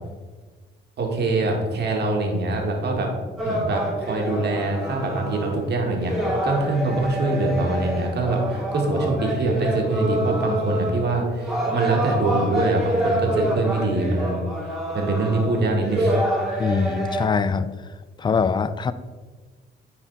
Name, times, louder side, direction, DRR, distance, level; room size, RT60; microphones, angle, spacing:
voice 1, 1.0-3.1 3.4-14.4 14.9-16.1, right 2 dB, 55° right, 1 dB, 1.8 m, -24 dB
sound 1, 3.4-5.7 5.9-17.3, right 1 dB, ahead, 2.2 m, -27 dB
voice 2, 16.6-17.7 18.2-18.9, left 5 dB, 25° left, 14 dB, 0.4 m, -23 dB
9.7 x 4.3 x 4.0 m, 1.3 s
cardioid pair, 90°, 20 cm